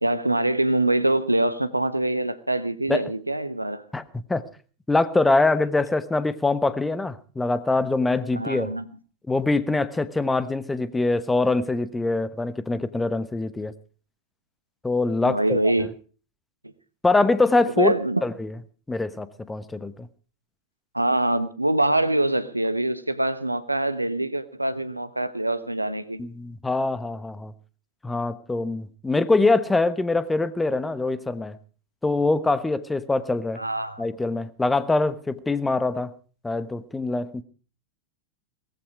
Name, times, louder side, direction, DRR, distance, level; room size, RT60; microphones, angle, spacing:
voice 1, 0.0-3.8 8.4-8.8 15.2-15.9 17.8-18.2 20.9-26.2 33.6-34.0, right 1 dB, 85° right, 1.1 m, -24 dB
voice 2, 4.9-8.7 9.3-13.7 14.8-15.7 17.0-17.9 18.2-18.5 18.9-20.1 26.2-27.5 28.0-31.6 32.0-33.6 34.0-36.1 36.4-37.4, left 3 dB, 10° left, 1.1 m, -24 dB
19.0 x 14.5 x 4.7 m
figure-of-eight pair, 90°, 0 cm